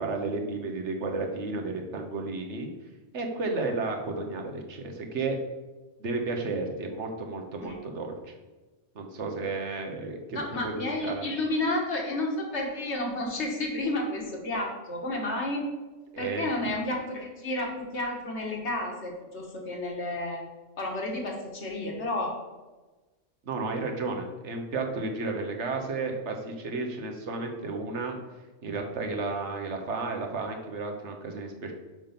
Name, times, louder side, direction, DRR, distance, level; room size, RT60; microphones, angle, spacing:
voice 1, 0.0-2.7 3.1-5.4 6.0-8.3 8.9-11.3 16.1-16.5 23.5-28.2 28.6-31.7, right 3 dB, 75° right, 3 dB, 1.4 m, -32 dB
voice 2, 10.3-15.6 16.2-20.4 20.8-22.4, left 2 dB, 70° left, 0 dB, 1.8 m, -31 dB
6.1 x 5.2 x 5.8 m, 1.2 s
omnidirectional pair, 1.2 m